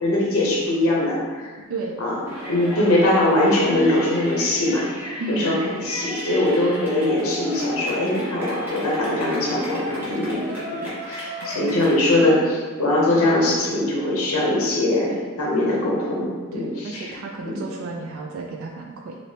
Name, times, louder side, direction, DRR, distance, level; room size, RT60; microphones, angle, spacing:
voice 1, 0.0-1.5 2.0-2.2 2.5-4.8 5.3-15.1 15.4-17.2 17.4-17.7, left 1 dB, 70° left, -4 dB, 0.7 m, -21 dB
voice 2, 1.7-2.0 5.2-5.9 11.4-12.1 15.1-15.3 16.5-19.2, right 3 dB, 65° right, 0 dB, 0.3 m, -33 dB
Yell, 2.3-11.9, equal, 10° right, 0.8 m, -34 dB
3.3 x 2.7 x 2.7 m, 1.4 s
head